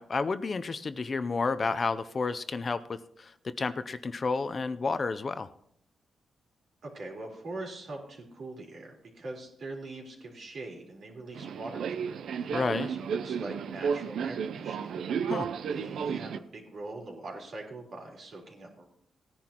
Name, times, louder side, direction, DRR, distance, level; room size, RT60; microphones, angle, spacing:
voice 1, 0.0-5.5 12.5-12.9 15.3-15.5, left 4 dB, 40° left, 12 dB, 0.5 m, -31 dB
voice 2, 6.8-12.5 12.8-15.0 15.7-18.8, right 2 dB, 65° right, 0 dB, 3.9 m, -42 dB
Subway metro underground, 11.3-16.4, right 7 dB, 80° right, 0.5 m, -33 dB
18.0 x 10.5 x 3.0 m, 0.69 s
cardioid pair, 95°, 0 cm